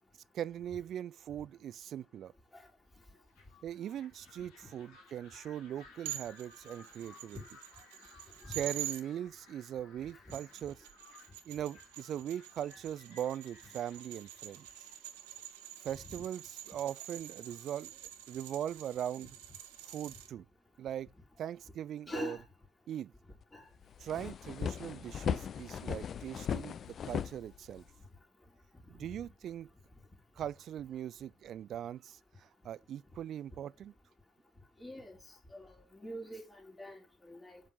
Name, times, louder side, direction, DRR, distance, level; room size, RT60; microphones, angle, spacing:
voice 1, 0.3-2.3 3.6-7.4 8.5-10.7 11.5-14.9 15.8-17.9 18.3-19.3 19.8-20.4 20.8-21.1 21.4-22.4 22.9-23.1 24.0-27.8 28.9-29.7 30.4-33.9, right 10 dB, 60° right, 0.4 m, -40 dB
sound 1, 3.0-15.8, left 4 dB, 75° left, 3.1 m, -60 dB
sound 2, 6.1-9.0 10.1-20.3, right 13 dB, 85° right, 1.2 m, -47 dB
voice 2, 22.1-22.4 23.5-23.7 24.2-24.3 34.8-37.6, left 1 dB, 20° left, 4.2 m, -44 dB
sound 3, 23.4-23.5 23.8-28.0, left 7 dB, 50° left, 0.6 m, -37 dB
7.5 x 7.4 x 3.9 m
hypercardioid pair, 55°, 0 cm